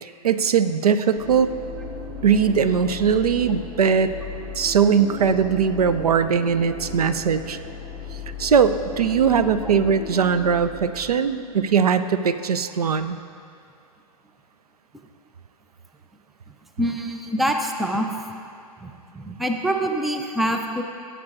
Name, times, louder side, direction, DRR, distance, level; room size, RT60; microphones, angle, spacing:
voice 1, 0.0-1.5 2.2-4.1 4.6-7.6 8.4-13.2, right 6 dB, 75° right, 12 dB, 0.4 m, -20 dB
sound 1, 1.2-11.9, left 3 dB, 20° right, 0.9 m, -37 dB
voice 2, 16.8-18.1 18.8-20.8, equal, ahead, 4 dB, 0.3 m, -25 dB
14.0 x 7.9 x 2.5 m, 2.4 s
figure-of-eight pair, 105°, 20 cm